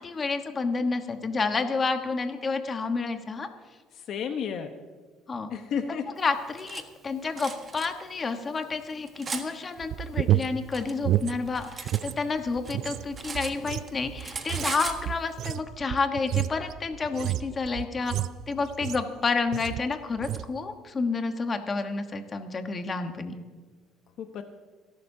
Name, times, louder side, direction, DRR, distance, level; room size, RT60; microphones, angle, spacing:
voice 1, 0.0-3.5 5.3-5.5 6.2-18.1 18.5-23.3, left 4 dB, 25° left, 6 dB, 1.2 m, -30 dB
voice 2, 3.9-4.7 5.5-6.1 24.2-24.4, left 7 dB, 50° left, 7 dB, 1.0 m, -32 dB
Cutlery silverware, 6.3-6.8 7.4-7.9 8.6-9.5 10.3-12.0 12.4-13.9 14.2-15.0, right 5 dB, 25° right, 1.4 m, -37 dB
sound 1, 9.8-12.2 12.5-19.2 19.5-19.9 20.2-20.5, right 13 dB, 55° right, 0.4 m, -30 dB
28.0 x 11.5 x 2.8 m, 1.5 s
cardioid pair, 135°, 0 cm